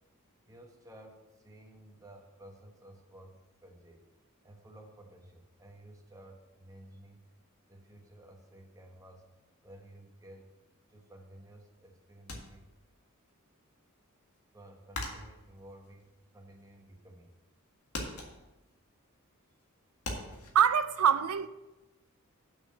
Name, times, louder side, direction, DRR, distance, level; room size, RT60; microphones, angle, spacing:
voice 1, 0.5-4.1 4.4-7.2 7.7-9.3 9.6-10.5 10.9-12.7 14.5-17.3, right 1 dB, 15° right, 1.3 m, -54 dB
sound 1, 12.3-13.3 13.6-16.9 17.2-17.6 17.9-20.5, left 2 dB, 80° left, 1.8 m, -41 dB
voice 2, 20.5-21.5, right 8 dB, 75° right, 0.5 m, -24 dB
6.8 x 6.1 x 7.6 m
head